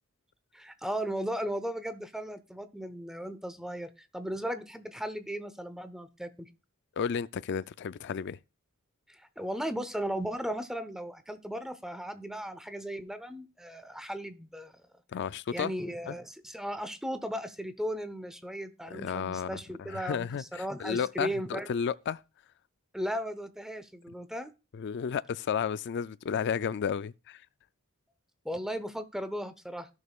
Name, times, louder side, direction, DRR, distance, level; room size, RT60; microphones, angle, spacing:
voice 1, 0.5-6.5 9.1-14.8 15.5-21.7 22.9-24.5 28.4-29.9, equal, ahead, 0.8 m, -36 dB
voice 2, 7.0-8.4 15.1-15.7 16.1-16.2 18.9-19.6 19.9-22.2 24.7-27.4, left 7 dB, 55° left, 0.4 m, -32 dB
15.5 x 6.3 x 2.4 m
head